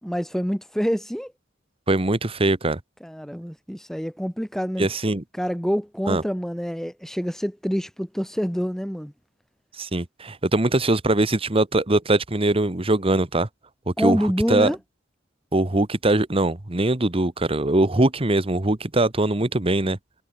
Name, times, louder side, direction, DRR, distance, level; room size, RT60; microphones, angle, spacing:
voice 1, 0.0-1.3 3.0-4.9 5.3-9.1 14.0-14.8, equal, ahead, 2.5 m, -26 dB
voice 2, 1.9-2.8 4.8-5.2 6.1-6.2 9.8-13.5 13.9-14.2 14.5-14.7 15.5-20.0, right 2 dB, 30° right, 1.3 m, -21 dB
head